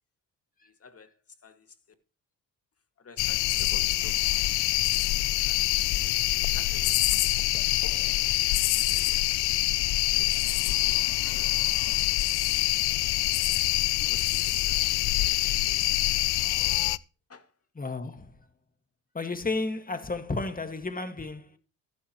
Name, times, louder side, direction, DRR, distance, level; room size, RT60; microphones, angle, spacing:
voice 1, 0.6-1.8 3.0-4.4 5.3-9.2 9.7-12.7 13.7-16.0 17.3-17.5, left 5 dB, 35° left, 2.2 m, -52 dB
sound 1, 3.2-17.0, left 18 dB, 70° left, 0.6 m, -25 dB
voice 2, 17.8-18.4 19.1-21.6, left 3 dB, 20° left, 2.0 m, -32 dB
14.0 x 12.0 x 3.1 m
supercardioid pair, 60°, 40 cm